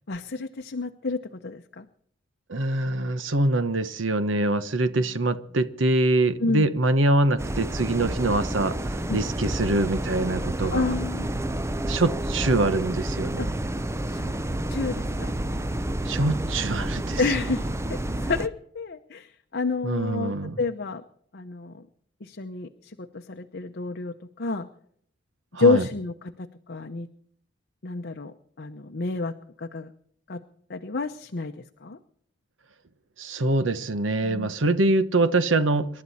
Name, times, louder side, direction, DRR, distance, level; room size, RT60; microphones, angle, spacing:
voice 1, 0.1-1.8 6.4-6.7 9.1-9.2 10.7-11.5 13.4-13.5 14.1-14.3 14.7-15.3 17.2-17.6 17.9-21.0 21.3-21.8 22.2-24.7 25.6-27.1 27.8-29.9 30.3-30.4 30.7-31.5 31.8-32.0 34.2-34.5, left 3 dB, 55° left, 6 dB, 0.8 m, -29 dB
voice 2, 2.5-10.9 11.8-13.6 16.1-17.2 19.8-20.6 25.5-25.8 33.2-35.9, right 2 dB, 75° right, 12 dB, 1.1 m, -24 dB
sound 1, 7.4-18.5, right 1 dB, 15° right, 0.6 m, -29 dB
28.0 x 12.0 x 4.2 m, 0.66 s
head